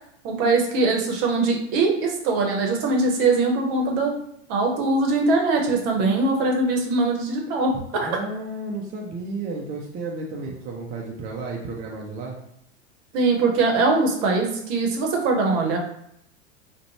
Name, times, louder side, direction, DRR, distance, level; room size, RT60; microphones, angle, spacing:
voice 1, 0.2-4.1 4.5-8.1 13.1-15.8, right 3 dB, 50° right, 1 dB, 0.8 m, -22 dB
voice 2, 8.1-12.4, right 3 dB, 25° right, -2 dB, 0.4 m, -32 dB
2.5 x 2.1 x 2.8 m, 0.72 s
hypercardioid pair, 95°, 36 cm